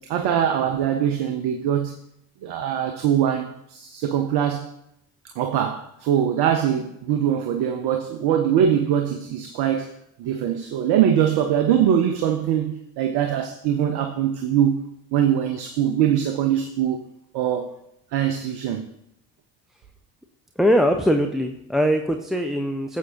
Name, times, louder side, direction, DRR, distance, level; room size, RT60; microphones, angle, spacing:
voice 1, 0.1-2.0 2.4-4.7 5.4-9.9 10.2-14.8 15.1-17.0 17.3-17.8 18.1-18.8, right 9 dB, 50° right, 1.0 m, -22 dB
voice 2, 20.6-23.0, equal, ahead, 0.6 m, -21 dB
17.0 x 7.4 x 2.9 m
figure-of-eight pair, 55°, 48 cm